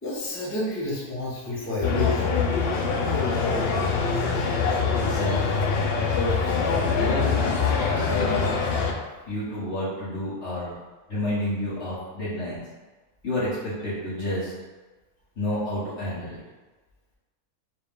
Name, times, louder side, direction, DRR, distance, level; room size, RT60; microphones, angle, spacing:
voice 1, 0.0-2.3 4.2-4.5, left 2 dB, 15° left, -7 dB, 0.6 m, -30 dB
sound 1, 1.8-8.9, left 5 dB, 70° left, 0.5 m, -24 dB
voice 2, 4.9-5.6 7.0-7.7 8.1-8.4 9.3-10.7 11.1-12.6 13.2-14.5 15.4-16.4, left 1 dB, 50° left, -9 dB, 1.6 m, -30 dB
4.5 x 2.3 x 3.5 m, 1.2 s
omnidirectional pair, 1.6 m